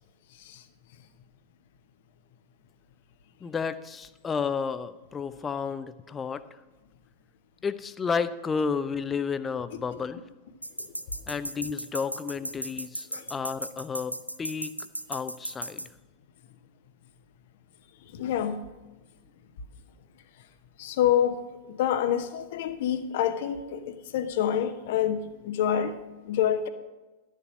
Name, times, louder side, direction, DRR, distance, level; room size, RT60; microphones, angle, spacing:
voice 1, 0.3-0.6 9.7-9.8 10.8-10.9 13.1-13.3 18.0-18.7 20.8-26.7, left 9 dB, 55° left, 11 dB, 0.8 m, -28 dB
voice 2, 3.4-6.6 7.6-10.2 11.3-14.8 15.1-15.8, left 5 dB, 20° left, 14 dB, 0.5 m, -32 dB
sound 1, 10.6-15.9, right 1 dB, 90° right, 0.5 m, -35 dB
12.0 x 6.8 x 6.0 m, 1.2 s
figure-of-eight pair, 90°, 0 cm